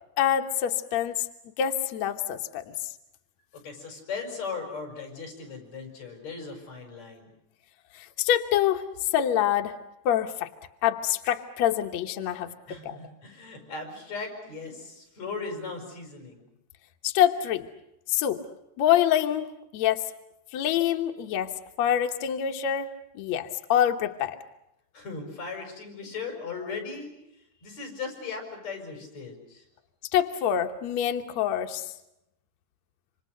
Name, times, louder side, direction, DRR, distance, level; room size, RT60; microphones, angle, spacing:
voice 1, 0.2-1.3 1.6-2.6 7.9-9.8 10.0-10.5 10.8-13.0 17.0-17.7 18.1-18.4 18.8-19.4 19.7-20.0 20.5-21.5 21.8-22.9 23.1-24.4 30.1-31.9, left 10 dB, 75° left, 5 dB, 1.6 m, -25 dB
voice 2, 3.5-7.3 12.7-16.5 24.9-27.1 27.6-29.6, left 4 dB, 40° left, 4 dB, 7.4 m, -38 dB
27.5 x 26.5 x 6.6 m, 0.83 s
omnidirectional pair, 4.8 m